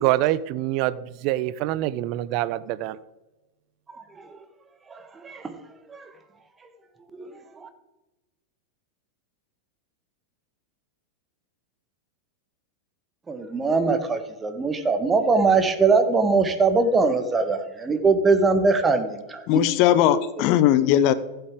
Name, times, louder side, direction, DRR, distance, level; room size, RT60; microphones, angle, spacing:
voice 1, 0.0-3.0, right 15 dB, 45° right, 17 dB, 0.5 m, -25 dB
voice 2, 4.9-5.5 5.9-6.0 7.1-7.3 7.6-7.7 13.3-19.6 20.1-20.2, right 4 dB, 15° right, 8 dB, 1.3 m, -22 dB
voice 3, 19.5-21.1, left 11 dB, 45° left, 14 dB, 0.7 m, -19 dB
15.5 x 7.9 x 3.6 m, 1.1 s
figure-of-eight pair, 90°, 0 cm